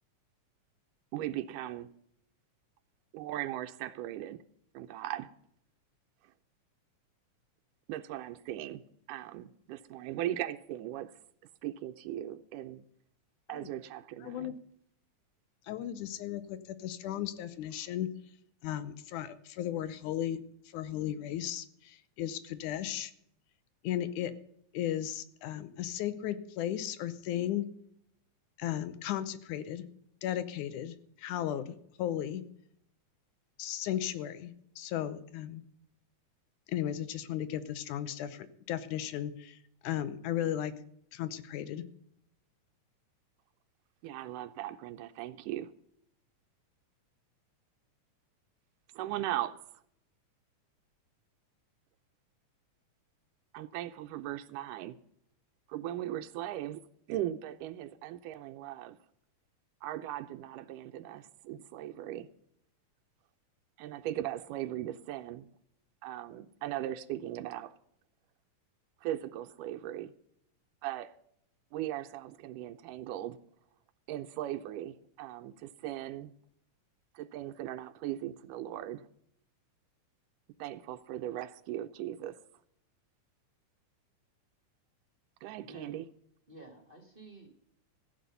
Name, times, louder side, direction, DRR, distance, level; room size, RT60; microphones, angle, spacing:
voice 1, 1.1-1.9 3.1-4.4 4.7-5.3 7.9-8.8 9.1-11.1 11.6-12.8 13.5-14.5 44.0-45.7 49.0-49.8 53.5-55.0 55.7-56.8 57.1-59.0 59.8-62.3 63.8-65.5 66.0-67.7 69.0-70.1 70.8-71.1 71.7-73.4 74.1-76.3 77.2-79.1 80.6-82.4 85.4-86.1, right 13 dB, 90° right, 2.2 m, -38 dB
voice 2, 14.2-14.5 15.7-18.1 18.6-20.4 20.7-23.1 23.8-24.3 24.7-27.7 28.6-29.9 30.2-32.4 33.6-35.6 36.7-39.6 39.8-40.7 41.1-41.8, left 11 dB, 80° left, 2.3 m, -35 dB
voice 3, 85.6-85.9 86.5-87.5, right 1 dB, 20° right, 1.5 m, -51 dB
15.0 x 7.8 x 6.8 m
omnidirectional pair, 3.6 m